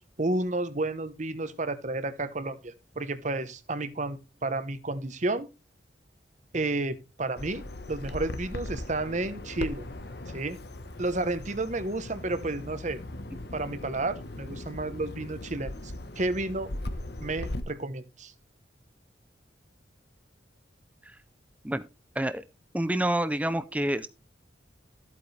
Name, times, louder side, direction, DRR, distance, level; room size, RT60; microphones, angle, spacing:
voice 1, 0.0-5.5 6.5-7.6 7.9-9.9 10.3-10.6 11.0-13.0 13.5-15.7 16.2-16.7 17.2-18.3, right 2 dB, 40° right, 13 dB, 1.1 m, -31 dB
Bird vocalization bird call bird song, 7.4-17.6, left 1 dB, 55° left, 1.3 m, -39 dB
voice 2, 22.7-24.1, right 1 dB, 5° right, 12 dB, 0.6 m, -27 dB
14.0 x 8.4 x 3.3 m, 0.27 s
head